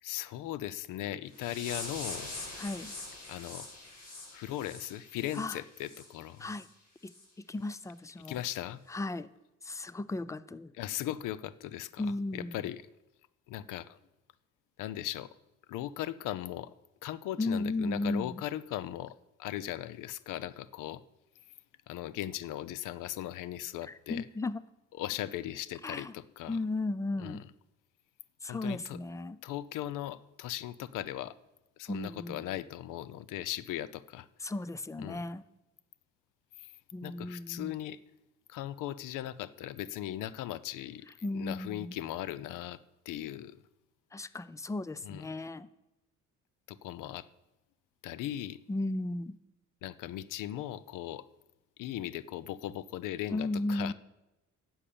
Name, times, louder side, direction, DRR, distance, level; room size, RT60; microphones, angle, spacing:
voice 1, 0.0-2.3 3.3-3.7 4.3-6.5 8.3-8.8 10.8-12.8 13.5-14.0 14.8-15.3 15.7-16.7 17.0-21.0 21.9-24.2 25.0-26.6 27.2-27.4 28.5-29.0 29.4-31.4 31.8-34.3 35.0-35.3 36.6-36.7 37.0-38.0 38.5-41.1 41.3-42.8 43.1-43.6 45.0-45.3 46.7-47.3 48.0-48.6 49.8-51.3 51.8-53.9, left 13 dB, 80° left, 18 dB, 0.6 m, -38 dB
sound 1, 1.3-6.1 6.4-6.7 7.1-7.2 7.7-7.8 8.3-8.4, left 2 dB, 55° left, 4.9 m, -44 dB
voice 2, 2.6-2.9 5.3-5.6 6.4-6.7 7.0-8.4 8.9-9.3 9.6-10.7 12.0-12.6 17.4-18.4 23.8-24.6 25.8-26.1 26.5-27.4 28.4-29.4 31.9-32.5 34.4-35.4 36.9-37.7 41.2-42.0 44.1-45.7 48.7-49.4 53.3-53.9, left 2 dB, 10° left, 17 dB, 0.4 m, -35 dB
11.0 x 7.2 x 8.5 m, 0.97 s
cardioid pair, 115°, 31 cm